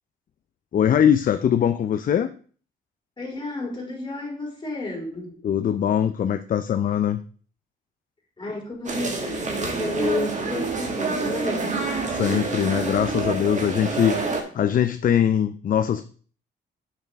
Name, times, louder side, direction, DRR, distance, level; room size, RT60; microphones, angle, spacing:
voice 1, 0.7-2.3 5.4-7.2 12.1-16.1, left 9 dB, 45° left, 0.5 m, -22 dB
voice 2, 3.2-5.3 8.4-11.7, left 2 dB, 25° left, 2.9 m, -31 dB
sound 1, 8.8-14.4, right 3 dB, 40° right, 1.7 m, -27 dB
6.6 x 6.3 x 3.5 m
cardioid pair, 90°, 20 cm